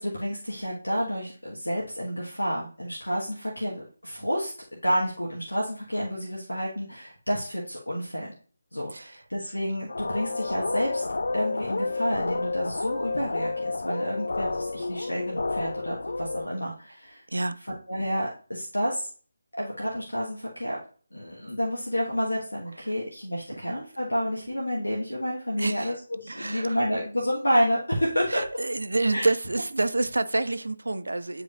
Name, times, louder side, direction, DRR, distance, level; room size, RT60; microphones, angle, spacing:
voice 1, 0.0-4.5 4.8-8.3 8.7-11.0 11.3-17.2 17.9-19.1 19.5-20.8 21.1-28.4 29.1-29.3, equal, 80° left, 1.4 m, -29 dB
sound 1, 9.9-16.5, left 3 dB, 60° left, 0.3 m, -30 dB
voice 2, 17.3-17.6 23.5-23.6 25.6-26.0 26.3-26.8 28.3-31.4, right 2 dB, 65° right, 0.4 m, -28 dB
8.4 x 5.0 x 2.5 m
figure-of-eight pair, 155°, 0 cm